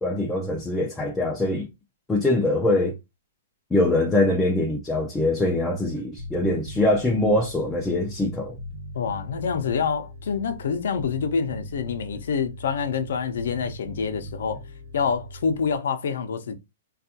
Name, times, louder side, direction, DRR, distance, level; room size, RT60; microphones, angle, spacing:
voice 1, 0.0-1.7 2.1-3.0 3.7-8.6, left 2 dB, 10° left, 0.4 m, -23 dB
Bass guitar, 6.2-15.8, equal, 40° right, 1.0 m, -40 dB
voice 2, 8.9-14.6 14.9-16.5, left 6 dB, 75° left, 0.6 m, -27 dB
3.3 x 2.3 x 2.7 m
hypercardioid pair, 160°, 0 cm